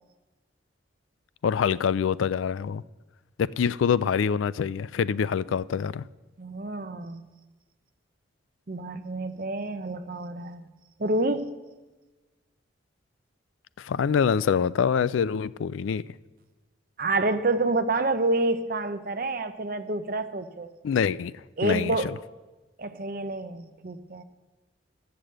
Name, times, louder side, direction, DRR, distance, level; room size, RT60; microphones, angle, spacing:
voice 1, 1.4-2.8 3.4-6.0 13.8-16.0 20.8-21.3 21.6-22.1, left 7 dB, 85° left, 19 dB, 0.3 m, -25 dB
voice 2, 6.4-7.2 8.7-10.7 11.0-11.6 17.0-20.7 21.6-22.1 22.8-24.2, right 2 dB, 45° right, 9 dB, 0.7 m, -28 dB
12.5 x 6.8 x 7.7 m, 1.2 s
head